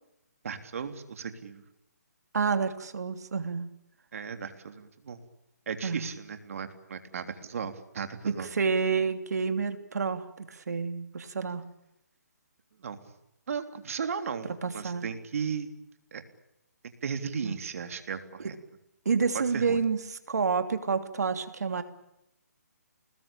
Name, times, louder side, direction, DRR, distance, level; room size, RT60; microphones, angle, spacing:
voice 1, 0.4-1.6 4.1-5.2 5.7-8.5 12.8-13.0 13.5-14.5 14.7-15.7 16.1-16.2 17.0-18.6 19.5-19.8, right 6 dB, 55° right, 8 dB, 3.4 m, -35 dB
voice 2, 2.3-3.7 5.8-6.1 8.3-11.6 14.6-15.1 17.4-17.5 18.4-18.5 19.0-21.8, right 5 dB, 70° right, 8 dB, 3.1 m, -29 dB
29.0 x 20.5 x 8.9 m, 0.85 s
hypercardioid pair, 160°, 9 cm